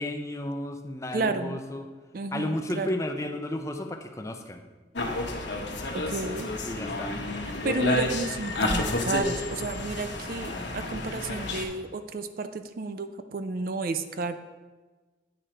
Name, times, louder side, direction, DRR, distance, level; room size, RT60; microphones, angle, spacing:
voice 1, 0.0-1.9 2.3-4.7 6.6-7.1, left 1 dB, 15° left, 5 dB, 0.4 m, -33 dB
voice 2, 1.1-1.6 2.1-2.9 5.9-6.5 7.6-14.4, right 3 dB, 50° right, 9 dB, 0.4 m, -32 dB
sound 1, 5.0-11.6, left 2 dB, 85° left, 1.1 m, -30 dB
9.1 x 5.0 x 4.4 m, 1.3 s
head